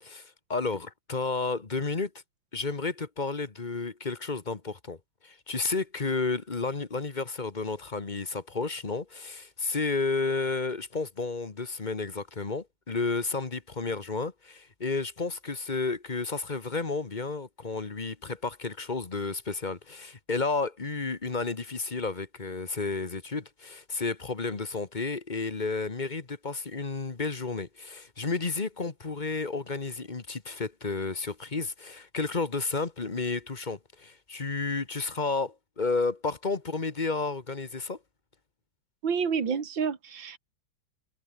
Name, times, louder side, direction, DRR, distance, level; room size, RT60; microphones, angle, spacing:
voice 1, 0.0-2.1 2.5-5.0 5.2-38.0, left 4 dB, 25° left, 1.4 m, -32 dB
voice 2, 39.0-40.4, right 6 dB, 70° right, 3.1 m, -29 dB
omnidirectional pair, 2.1 m